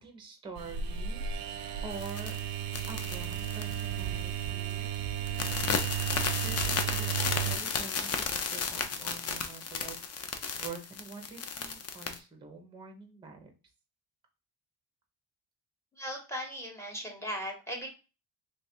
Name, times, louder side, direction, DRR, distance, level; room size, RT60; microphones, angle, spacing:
voice 1, 0.0-1.2 1.8-2.3 2.9-4.9 5.9-13.5, right 4 dB, 10° right, 4 dB, 0.6 m, -46 dB
sound 1, 0.6-7.6, right 9 dB, 60° right, 0.5 m, -34 dB
sound 2, 1.9-4.4 4.7-5.0 5.3-12.2, left 5 dB, 40° left, 0.4 m, -34 dB
voice 2, 16.0-17.9, equal, 5° left, 1 dB, 0.9 m, -38 dB
3.2 x 2.3 x 4.2 m, 0.32 s
cardioid pair, 160°, 43 cm